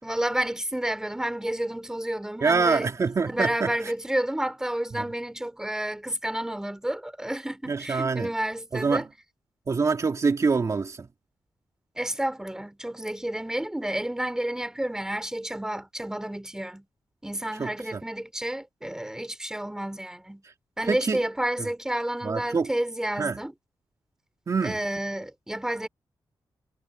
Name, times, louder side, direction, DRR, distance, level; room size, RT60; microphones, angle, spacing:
voice 1, 0.0-2.9 3.2-9.0 12.0-16.8 17.2-20.4 20.8-23.5 24.6-25.9, right 1 dB, 5° right, 4.4 m, -30 dB
voice 2, 2.4-3.7 4.9-5.0 7.7-8.3 8.7-9.1 9.7-11.1 17.6-18.0 20.9-21.2 21.6-21.7 22.2-22.7 23.2-23.4 24.5-24.8, right 4 dB, 40° right, 2.5 m, -25 dB
wide cardioid pair, 135°, 8 cm